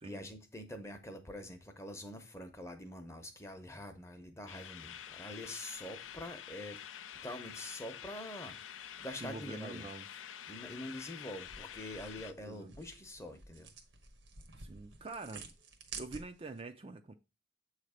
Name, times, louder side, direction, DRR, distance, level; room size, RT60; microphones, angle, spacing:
voice 1, 0.0-6.8 7.2-8.7 9.0-9.9 10.5-13.7, left 1 dB, 15° left, 0.8 m, -45 dB
sound 1, 4.5-12.3, left 9 dB, 90° left, 0.4 m, -48 dB
voice 2, 9.2-10.1 12.4-12.7 14.6-15.5 16.0-17.1, right 3 dB, 30° right, 0.4 m, -45 dB
sound 2, 11.4-16.6, right 5 dB, 85° right, 1.1 m, -51 dB
7.5 x 3.2 x 4.9 m
head